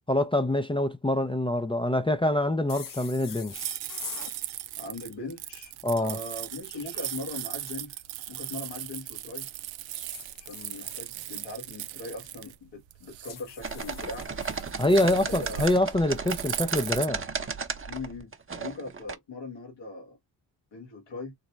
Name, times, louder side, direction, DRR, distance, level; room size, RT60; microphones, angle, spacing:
voice 1, 0.1-3.6 5.8-6.2 14.8-17.2, left 1 dB, 10° left, 0.5 m, -25 dB
sound 1, 2.7-4.4 6.4-7.8 9.9-11.4 13.2-15.1, left 7 dB, 45° left, 0.9 m, -44 dB
sound 2, 3.5-17.1, right 14 dB, 85° right, 0.5 m, -38 dB
voice 2, 4.8-8.0 8.3-9.5 10.4-14.3 15.0-15.7 17.9-20.2 20.7-21.3, left 2 dB, 70° left, 1.5 m, -40 dB
sound 3, 13.6-19.2, right 5 dB, 30° right, 0.9 m, -34 dB
4.0 x 2.1 x 3.1 m
supercardioid pair, 45°, 44 cm